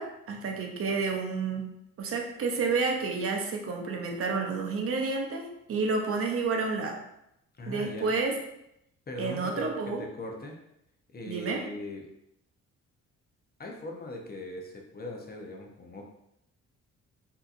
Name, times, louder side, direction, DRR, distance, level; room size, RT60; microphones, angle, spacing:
voice 1, 0.0-1.7 2.0-7.0 7.7-8.4 9.2-10.0 11.3-11.6, right 4 dB, 50° right, 1 dB, 0.6 m, -30 dB
voice 2, 7.6-8.1 9.1-9.7 10.0-10.6 11.1-12.1 13.6-16.1, left 2 dB, 30° left, 1 dB, 0.6 m, -40 dB
3.6 x 2.8 x 2.5 m, 0.80 s
cardioid pair, 90°, 30 cm